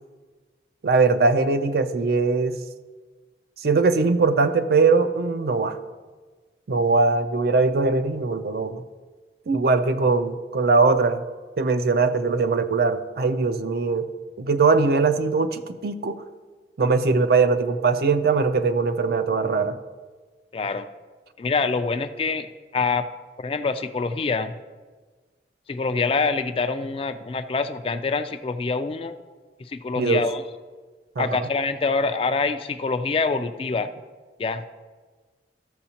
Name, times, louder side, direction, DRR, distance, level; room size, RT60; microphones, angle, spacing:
voice 1, 0.8-2.6 3.6-5.8 6.7-8.8 9.5-11.2 11.6-14.1 14.4-16.2 16.8-19.8 30.0-30.2 31.2-31.4, right 4 dB, 55° right, 10 dB, 0.4 m, -21 dB
voice 2, 20.5-20.9 21.4-22.5 22.7-23.1 23.4-24.5 25.7-29.1 29.7-30.4 31.2-33.9 34.4-34.7, left 4 dB, 30° left, 10 dB, 0.3 m, -25 dB
13.5 x 7.0 x 2.9 m, 1.4 s
head